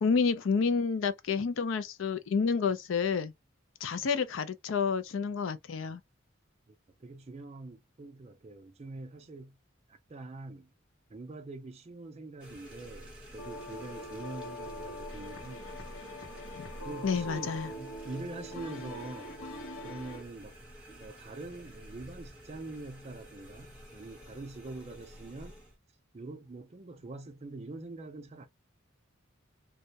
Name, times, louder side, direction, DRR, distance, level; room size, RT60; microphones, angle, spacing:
voice 1, 0.0-3.3 3.8-6.0 16.6-16.7 17.0-17.7, left 5 dB, 65° left, 0.4 m, -29 dB
voice 2, 6.7-9.6 9.9-10.7 11.1-15.8 16.8-19.4 19.8-20.6 21.0-25.6 26.1-28.5, right 2 dB, 30° right, 0.4 m, -44 dB
sound 1, 12.4-25.8, equal, 5° right, 0.8 m, -50 dB
sound 2, 13.4-20.2, left 1 dB, 85° left, 0.9 m, -43 dB
2.3 x 2.1 x 2.6 m
head